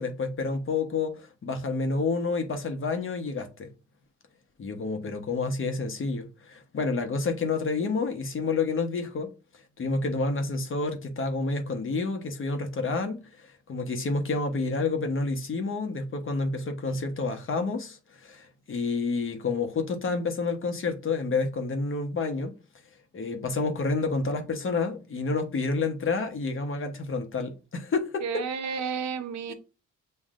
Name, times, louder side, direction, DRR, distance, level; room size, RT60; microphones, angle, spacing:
voice 1, 0.0-3.7 4.6-9.3 9.8-22.6 23.1-28.2 29.5-29.6, left 3 dB, 45° left, 1.1 m, -29 dB
voice 2, 28.2-29.5, right 6 dB, 65° right, 0.7 m, -31 dB
7.4 x 2.5 x 2.5 m
cardioid pair, 90°, 30 cm